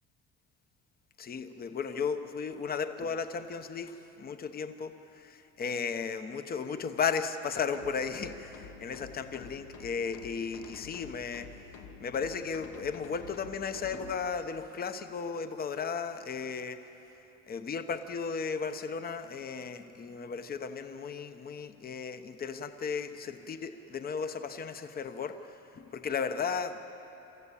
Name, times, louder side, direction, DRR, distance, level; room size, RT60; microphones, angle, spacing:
voice 1, 1.2-11.5 12.0-16.8 17.5-25.3 25.7-26.9, left 6 dB, 30° left, 8 dB, 1.0 m, -35 dB
sound 1, 7.7-14.2, left 6 dB, 90° left, 2.2 m, -49 dB
27.0 x 14.0 x 8.5 m, 2.9 s
cardioid pair, 155°, 30 cm